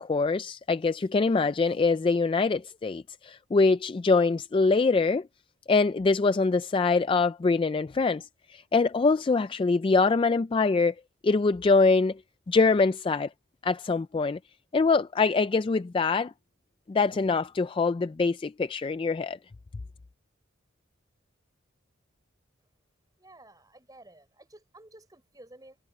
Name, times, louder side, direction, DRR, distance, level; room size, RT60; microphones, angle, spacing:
voice 1, 0.0-5.2 5.7-10.9 11.2-12.2 12.5-13.3 13.6-14.4 14.7-16.3 16.9-19.4, left 4 dB, 25° left, 0.3 m, -24 dB
voice 2, 23.2-25.8, right 1 dB, 20° right, 6.0 m, -52 dB
head